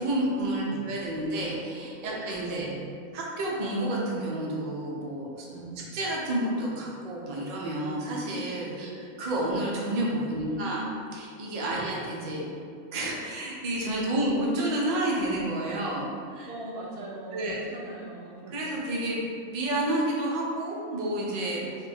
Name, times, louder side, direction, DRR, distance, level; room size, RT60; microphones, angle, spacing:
voice 1, 0.0-2.7 3.1-5.5 5.9-8.9 9.2-10.8 11.1-12.4 12.9-16.1 16.3-16.5 17.3-17.6 18.5-21.7, right 1 dB, 85° right, -4 dB, 0.3 m, -30 dB
voice 2, 0.6-0.9 2.0-2.2 2.5-2.9 5.5-6.0 8.7-8.8 10.2-10.9 11.7-11.9 14.0-14.1 16.4-18.7, right 2 dB, 60° right, -3 dB, 0.7 m, -40 dB
3.2 x 2.2 x 3.3 m, 2.4 s
omnidirectional pair, 1.4 m